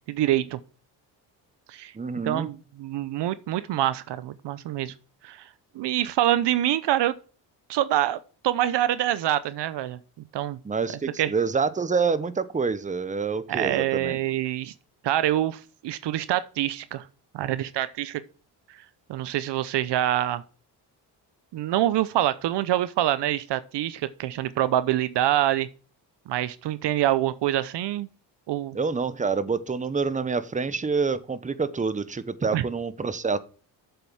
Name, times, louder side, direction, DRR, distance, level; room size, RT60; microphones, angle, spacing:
voice 1, 0.1-0.6 1.7-1.9 2.2-4.9 5.2-5.5 5.7-7.1 7.7-8.2 8.4-10.0 10.3-10.6 11.2-11.3 13.5-14.7 15.0-17.1 17.3-18.2 19.1-20.4 21.5-25.7 26.3-28.1 28.5-28.8 32.4-32.6, right 13 dB, 70° right, 0.8 m, -25 dB
voice 2, 1.9-2.5 10.6-14.2 28.7-33.4, right 5 dB, 15° right, 0.8 m, -27 dB
7.8 x 6.9 x 6.2 m
cardioid pair, 75°, 44 cm